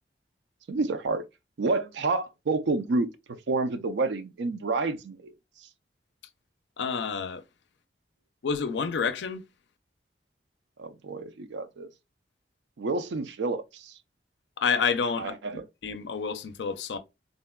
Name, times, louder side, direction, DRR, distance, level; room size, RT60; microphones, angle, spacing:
voice 1, 0.7-1.2 1.6-5.3 10.8-11.9 12.8-13.9 15.2-15.7, right 3 dB, 75° right, 0.4 m, -29 dB
voice 2, 6.8-7.4 8.4-9.4 14.6-15.3 15.8-17.0, left 5 dB, 75° left, 0.4 m, -28 dB
3.7 x 2.1 x 2.2 m
head